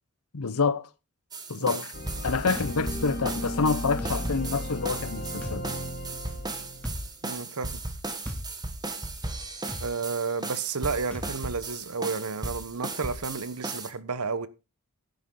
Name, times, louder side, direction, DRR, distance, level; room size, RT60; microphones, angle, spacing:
voice 1, 0.3-0.9 1.5-1.9 2.2-5.6, left 4 dB, 75° left, 0.8 m, -27 dB
sound 1, 1.3-13.9, right 2 dB, 20° right, 1.6 m, -36 dB
sound 2, 1.9-7.1, equal, 50° left, 2.3 m, -35 dB
sound 3, 2.6-2.8 4.0-4.2 5.4-5.6 6.8-7.0 8.3-8.5 9.7-9.9 11.1-11.3, equal, 5° left, 2.5 m, -37 dB
voice 2, 7.2-7.8 9.8-14.5, right 4 dB, 85° right, 1.0 m, -32 dB
11.5 x 10.5 x 3.8 m
head